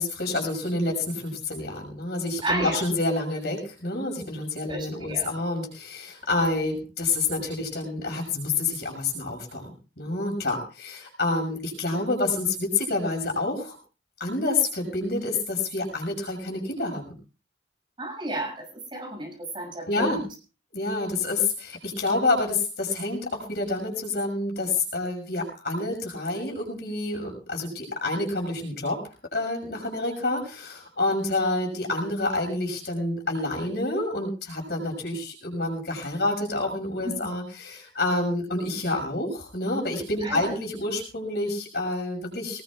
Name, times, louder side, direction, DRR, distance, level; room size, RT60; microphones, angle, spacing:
voice 1, 0.0-9.7 10.0-13.8 14.2-17.1 19.9-20.2 20.7-29.0 29.3-42.6, left 2 dB, 60° left, 1 dB, 6.1 m, -28 dB
voice 2, 2.4-2.8 4.7-5.3 18.0-20.3 37.0-37.2 40.2-40.5, right 1 dB, 25° right, -1 dB, 6.8 m, -32 dB
23.5 x 19.5 x 2.4 m, 0.34 s
head